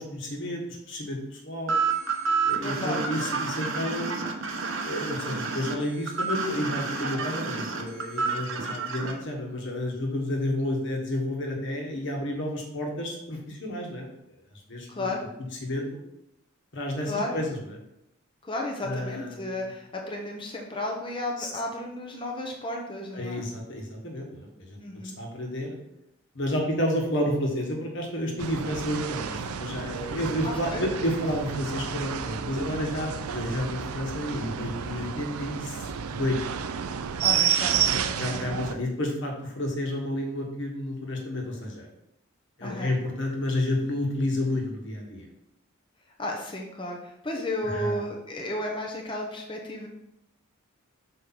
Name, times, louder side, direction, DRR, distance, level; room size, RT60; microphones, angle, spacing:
voice 1, 0.0-1.8 2.4-4.2 4.8-14.1 14.7-15.1 15.6-15.9 16.7-17.5 18.8-19.6 21.4-21.5 23.1-24.8 25.2-25.8 26.3-36.4 38.2-41.9 42.6-45.3 47.6-48.0, left 1 dB, 55° left, 0 dB, 1.5 m, -30 dB
sound 1, 1.7-9.1, right 4 dB, 60° right, 0.9 m, -29 dB
voice 2, 2.6-3.0 14.9-15.2 17.0-17.4 18.4-23.4 24.8-25.1 30.4-30.9 37.2-38.6 42.6-42.9 46.2-49.9, left 1 dB, 20° left, 0 dB, 0.8 m, -33 dB
sound 2, 28.4-38.7, right 8 dB, 85° right, 0.5 m, -30 dB
6.1 x 5.0 x 4.0 m, 0.84 s
head